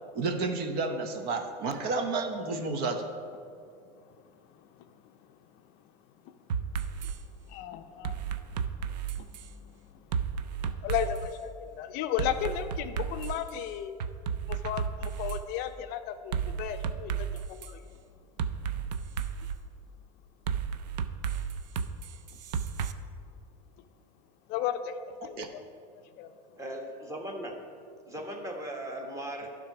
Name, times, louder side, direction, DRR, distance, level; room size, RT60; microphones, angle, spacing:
voice 1, 0.1-3.1 25.4-25.5, right 3 dB, 50° right, 6 dB, 0.9 m, -31 dB
sound 1, 6.5-7.2 8.0-9.5 10.1-11.3 12.2-13.5 14.0-15.4 16.3-17.7 18.4-19.6 20.5-22.9, right 7 dB, 85° right, 0.5 m, -33 dB
voice 2, 7.5-8.2 8.5-8.6 9.2-9.7 10.6-14.0 14.5-17.9 18.6-18.8 24.5-25.6 26.2-26.3, left 10 dB, 50° left, 9 dB, 0.5 m, -35 dB
voice 3, 26.6-27.6 28.1-29.5, right 1 dB, 15° right, 2 dB, 1.3 m, -38 dB
11.5 x 4.0 x 5.9 m, 2.3 s
supercardioid pair, 115°, 21 cm